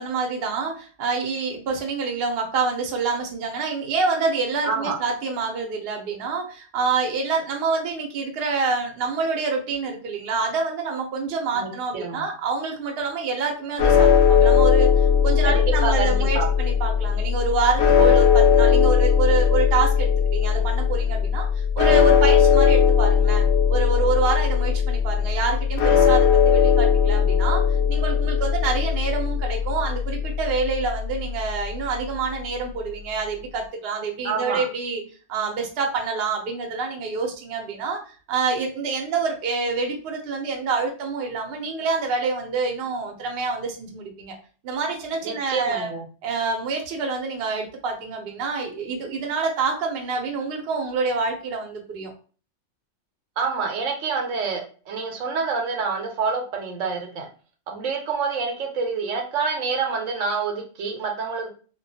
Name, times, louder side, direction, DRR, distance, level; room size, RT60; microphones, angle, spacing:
voice 1, 0.0-35.0 35.3-44.4 44.6-45.9 46.2-52.1, right 4 dB, 60° right, 2 dB, 0.8 m, -27 dB
voice 2, 4.6-5.0 11.5-12.2 15.4-16.5 34.2-34.6 45.2-46.0 53.4-57.3 57.7-61.5, right 5 dB, 80° right, 2 dB, 1.0 m, -27 dB
sound 1, 13.8-32.0, left 7 dB, 65° left, 0.8 m, -19 dB
2.3 x 2.2 x 2.6 m, 0.38 s
omnidirectional pair, 1.3 m